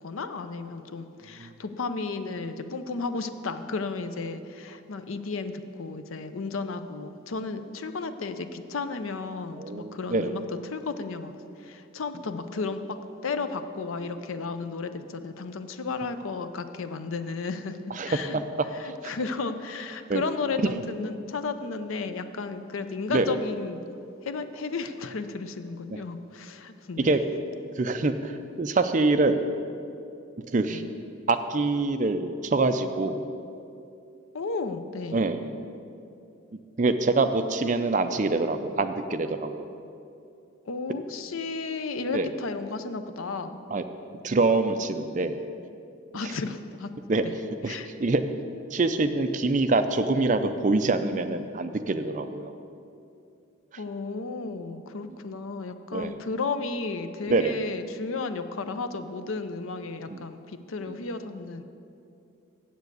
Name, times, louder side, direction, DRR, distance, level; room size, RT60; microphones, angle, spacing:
voice 1, 0.0-11.3 11.6-13.0 13.2-17.8 18.0-18.4 18.7-23.8 24.2-27.2 30.7-30.8 34.3-35.2 40.7-43.6 46.1-46.9 47.2-47.3 47.7-47.9 53.8-61.6, left 4 dB, 85° left, 10 dB, 0.6 m, -33 dB
voice 2, 9.5-10.3 17.9-18.4 19.0-19.1 20.1-20.2 20.6-20.7 23.1-23.4 25.9-26.0 27.0-27.2 27.8-29.4 30.5-30.8 31.3-33.3 35.1-35.6 36.8-39.6 42.1-42.3 43.7-43.8 44.2-45.4 47.1-47.2 47.6-48.2 48.7-52.5 55.9-56.1 57.3-57.6 60.1-60.2 60.9-61.0, right 3 dB, 35° right, 9 dB, 0.4 m, -25 dB
7.8 x 7.4 x 8.0 m, 2.6 s
head